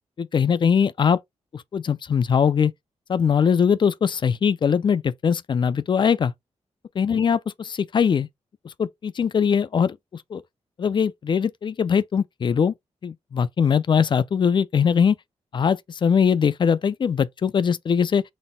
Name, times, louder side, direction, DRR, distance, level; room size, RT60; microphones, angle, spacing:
voice 1, 0.2-1.2 1.5-2.7 3.1-6.3 7.0-8.3 8.6-10.4 10.8-12.7 13.0-15.2 15.5-18.2, left 7 dB, 40° left, 0.4 m, -21 dB
4.1 x 2.1 x 3.6 m
wide cardioid pair, 115°, 12 cm